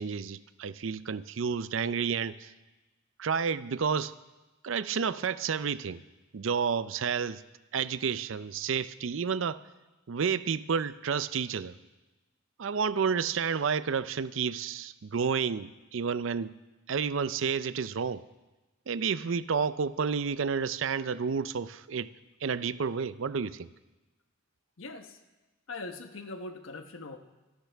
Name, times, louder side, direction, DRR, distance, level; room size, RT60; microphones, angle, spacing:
voice 1, 0.0-2.5 3.2-4.1 4.6-6.0 6.3-7.4 7.7-9.6 10.1-11.7 12.6-16.6 16.9-18.2 18.9-22.1 22.4-23.7, right 6 dB, 70° right, 15 dB, 0.5 m, -30 dB
voice 2, 24.8-25.2 25.7-27.2, left 3 dB, 85° left, 7 dB, 1.1 m, -41 dB
25.5 x 12.0 x 3.5 m, 1.1 s
head